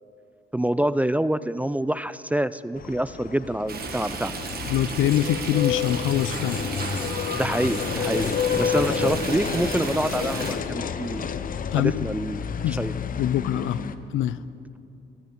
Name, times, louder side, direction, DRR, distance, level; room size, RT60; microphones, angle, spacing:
voice 1, 0.5-4.4 7.3-11.5 11.8-12.9, right 1 dB, 5° right, 15 dB, 0.3 m, -27 dB
sound 1, 2.8-14.0, left 7 dB, 45° left, 0.7 m, -30 dB
Stream, 3.7-10.5, right 4 dB, 50° right, 1.7 m, -33 dB
voice 2, 4.7-6.6 11.7-12.1 12.6-12.8 13.2-13.8 14.1-14.4, left 12 dB, 85° left, 16 dB, 0.5 m, -24 dB
16.5 x 13.5 x 4.5 m, 2.6 s
cardioid pair, 90°, 20 cm